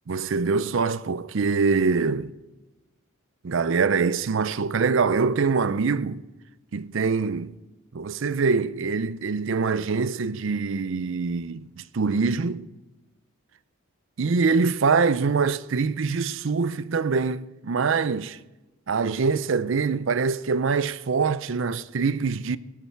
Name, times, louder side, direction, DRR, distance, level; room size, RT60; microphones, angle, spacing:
voice 1, 0.1-2.3 3.4-6.2 6.7-7.5 7.9-12.7 14.2-18.4 18.9-22.6, right 4 dB, 60° right, 0.5 m, -24 dB
20.0 x 8.4 x 4.6 m
head